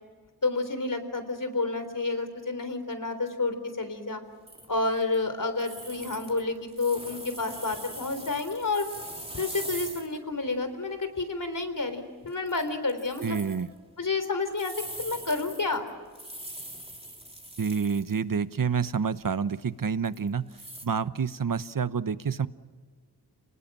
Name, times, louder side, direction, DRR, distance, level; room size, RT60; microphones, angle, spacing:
voice 1, 0.4-4.2 4.7-8.9 9.3-13.4 14.0-14.7 15.0-15.8, left 3 dB, 55° left, 9 dB, 3.8 m, -30 dB
sound 1, 4.5-5.3 5.6-10.2 10.5-10.6 11.1-11.3 11.6-11.9 12.3-13.7 14.5-18.2 18.6-18.7 20.0-20.9, right 1 dB, 15° right, 3.1 m, -42 dB
voice 2, 13.2-13.7 17.6-20.5 20.8-22.5, right 6 dB, 60° right, 14 dB, 1.0 m, -28 dB
30.0 x 19.5 x 7.5 m, 1.5 s
wide cardioid pair, 65°, 39 cm